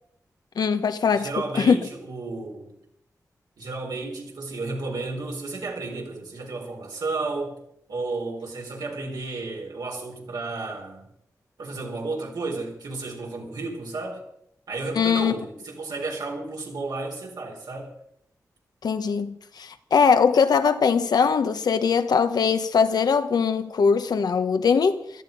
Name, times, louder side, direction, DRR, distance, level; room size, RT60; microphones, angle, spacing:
voice 1, 0.6-1.3 1.5-1.8 15.0-15.3 18.8-25.0, left 6 dB, 85° left, 1.0 m, -21 dB
voice 2, 1.1-2.7 3.6-7.6 7.9-11.1 11.6-14.2 14.7-17.9, right 3 dB, 85° right, 4.3 m, -32 dB
17.0 x 13.5 x 5.4 m
cardioid pair, 65°, 7 cm